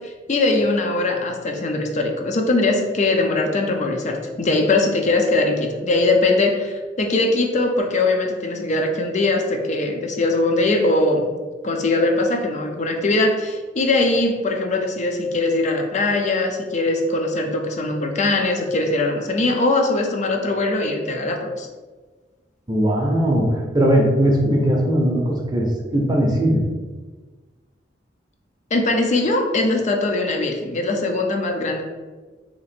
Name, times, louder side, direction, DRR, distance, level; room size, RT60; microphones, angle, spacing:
voice 1, 0.0-11.3 11.6-21.7 28.7-31.8, left 2 dB, 40° left, 3 dB, 0.5 m, -21 dB
voice 2, 22.7-26.7, right 1 dB, 25° right, -1 dB, 0.6 m, -19 dB
2.9 x 2.5 x 4.2 m, 1.3 s
head